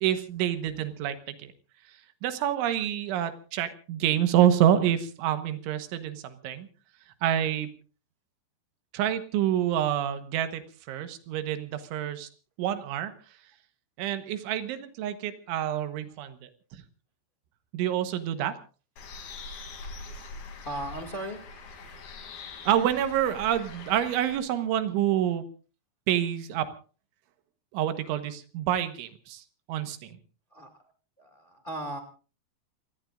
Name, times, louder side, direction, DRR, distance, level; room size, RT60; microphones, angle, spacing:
voice 1, 0.0-1.5 2.2-6.7 7.2-7.7 8.9-10.6 10.9-12.3 12.6-13.1 14.0-16.8 17.7-18.5 22.7-25.4 26.1-26.7 27.7-29.4 29.7-30.2, right 10 dB, 80° right, 9 dB, 3.6 m, -27 dB
Bird, 19.0-24.4, left 3 dB, 55° left, 4.6 m, -43 dB
voice 2, 20.6-21.4 30.5-30.7 31.2-32.0, right 1 dB, 75° left, 4 dB, 0.4 m, -36 dB
28.5 x 19.5 x 2.6 m, 0.38 s
omnidirectional pair, 5.5 m